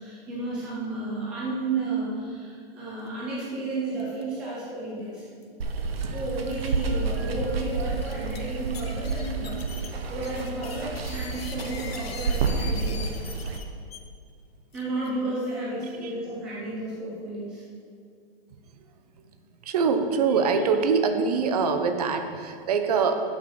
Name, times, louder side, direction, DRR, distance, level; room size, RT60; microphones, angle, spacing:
voice 1, 0.0-5.3 6.1-13.0 14.7-17.6, right 2 dB, 5° right, -7 dB, 0.3 m, -32 dB
sound 1, 4.0-4.2 4.5-4.6 5.2-5.4 6.3-6.4 6.9-7.0 7.8-8.4 8.7-14.0 14.7-15.1, left 6 dB, 85° left, 1.2 m, -42 dB
Water, 5.6-13.6, right 4 dB, 90° right, 1.2 m, -30 dB
voice 2, 19.7-23.2, right 5 dB, 40° right, 7 dB, 0.8 m, -24 dB
7.9 x 6.3 x 6.3 m, 2.2 s
hypercardioid pair, 170°, 30 cm